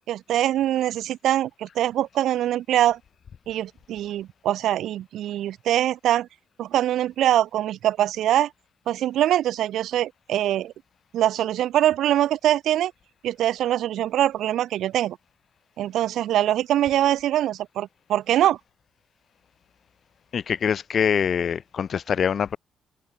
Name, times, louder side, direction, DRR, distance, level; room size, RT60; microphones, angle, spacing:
voice 1, 0.1-3.0 3.5-6.3 6.6-8.5 8.9-10.7 11.1-12.9 13.2-15.2 15.8-18.6, right 12 dB, 80° right, 3.4 m, -23 dB
voice 2, 20.3-22.6, left 7 dB, 55° left, 5.0 m, -24 dB
cardioid pair, 90°, 0 cm